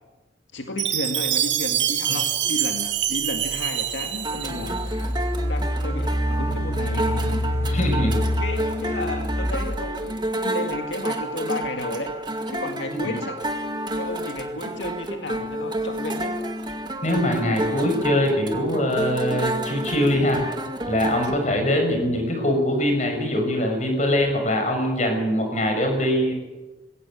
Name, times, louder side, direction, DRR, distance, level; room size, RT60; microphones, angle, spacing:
voice 1, 0.5-7.5 8.2-12.1 12.5-13.4 13.9-16.3, left 2 dB, 85° left, 4 dB, 2.0 m, -33 dB
Chime, 0.8-4.9, right 11 dB, 85° right, 2.2 m, -25 dB
Engine, 3.4-3.5 4.1-10.1, equal, 15° left, 1.3 m, -27 dB
sound 1, 4.2-21.4, right 1 dB, 25° right, 2.1 m, -30 dB
voice 2, 7.6-8.2 12.9-13.1 17.0-20.5 20.9-26.3, left 1 dB, 40° left, 4 dB, 6.4 m, -23 dB
21.5 x 16.5 x 9.2 m, 1.2 s
head